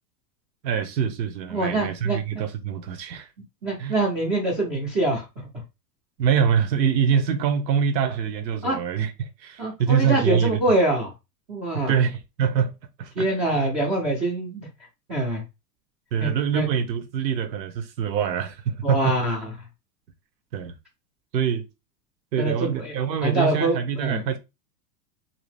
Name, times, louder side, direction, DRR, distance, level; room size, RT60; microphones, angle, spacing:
voice 1, 0.6-3.3 3.8-4.0 6.2-10.6 11.7-13.3 16.1-19.2 20.5-20.8 21.3-21.6 22.3-24.4, right 7 dB, 85° right, 0.8 m, -24 dB
voice 2, 1.5-2.2 3.6-5.5 8.6-8.8 9.6-11.1 11.5-11.9 13.2-14.7 15.1-15.4 16.2-16.7 18.8-19.4 22.4-22.9 23.2-24.2, right 1 dB, 15° right, 0.4 m, -24 dB
2.7 x 2.1 x 3.2 m
supercardioid pair, 135°, 49 cm